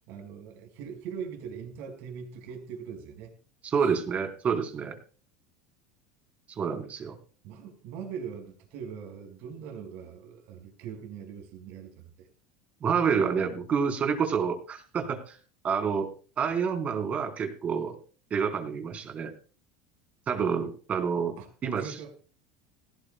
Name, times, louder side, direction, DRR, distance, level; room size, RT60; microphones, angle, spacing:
voice 1, 0.1-3.3 3.8-3.9 7.4-12.3 21.4-21.5 21.7-22.1, right 7 dB, 65° right, 4.9 m, -41 dB
voice 2, 3.7-4.9 6.6-7.1 12.8-15.4 15.6-18.0 18.3-19.3 20.3-21.4 21.6-22.0, right 6 dB, 35° right, 3.9 m, -28 dB
18.0 x 16.5 x 2.2 m
hypercardioid pair, 95°, 4 cm